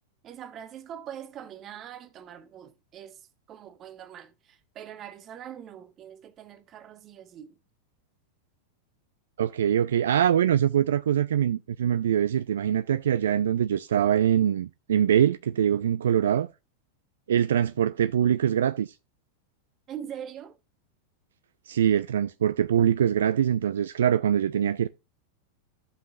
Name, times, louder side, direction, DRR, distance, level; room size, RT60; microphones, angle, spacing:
voice 1, 0.2-7.6 19.9-20.6, right 9 dB, 30° right, 0.8 m, -43 dB
voice 2, 9.4-16.5 17.3-18.9 21.7-24.9, right 9 dB, 65° right, 0.3 m, -23 dB
15.0 x 5.6 x 2.4 m
figure-of-eight pair, 90°, 0 cm